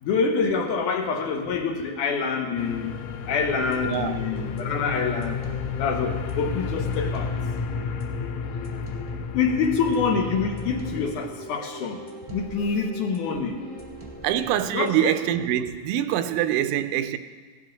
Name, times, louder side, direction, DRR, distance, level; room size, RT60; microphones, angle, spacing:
voice 1, 0.0-2.9 3.3-5.4 5.8-7.3 9.3-12.0 12.3-13.6 14.7-15.1, left 5 dB, 75° left, 3 dB, 2.5 m, -26 dB
sound 1, 2.6-11.1, left 6 dB, 90° left, 1.5 m, -32 dB
sound 2, 3.5-15.5, right 1 dB, 35° right, 0.5 m, -41 dB
voice 2, 3.8-4.2 14.2-17.2, right 11 dB, 80° right, 10 dB, 2.2 m, -24 dB
16.5 x 12.0 x 4.0 m, 1.5 s
omnidirectional pair, 4.0 m